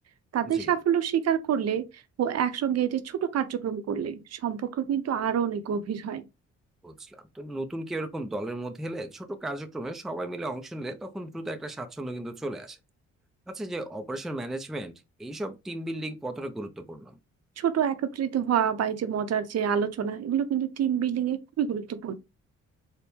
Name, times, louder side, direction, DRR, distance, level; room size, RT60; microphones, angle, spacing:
voice 1, 0.3-1.8 2.2-6.2 17.6-22.1, right 8 dB, 55° right, 0.7 m, -27 dB
voice 2, 6.8-12.8 13.5-14.9 15.2-17.2, right 1 dB, ahead, 0.4 m, -35 dB
4.2 x 2.1 x 3.4 m
cardioid pair, 90°, 30 cm